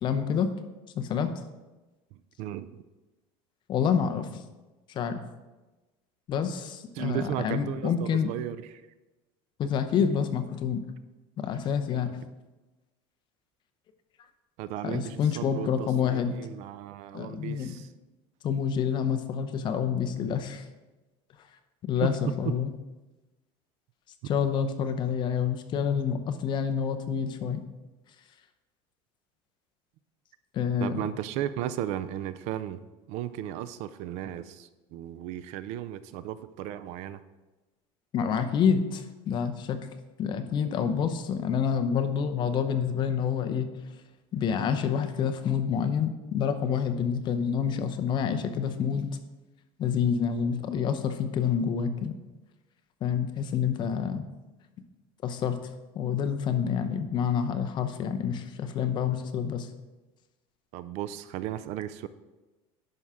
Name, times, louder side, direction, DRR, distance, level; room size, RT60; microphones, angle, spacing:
voice 1, 0.0-0.5 1.0-1.3 3.7-4.4 4.9-5.2 6.3-8.3 9.6-10.8 11.4-12.1 14.8-16.3 17.1-17.8 18.4-20.6 21.9-22.7 24.2-27.6 30.5-31.0 38.1-43.7 44.3-49.1 49.8-52.1 53.0-54.2 55.2-55.6 55.9-59.7, left 7 dB, 35° left, 9 dB, 0.7 m, -28 dB
voice 2, 2.1-2.7 7.0-8.8 11.9-12.2 14.6-17.9 22.0-22.1 30.8-32.8 33.1-37.2 60.7-62.1, right 11 dB, 60° right, 14 dB, 0.4 m, -35 dB
10.5 x 5.6 x 3.6 m, 1.1 s
cardioid pair, 155°, 13 cm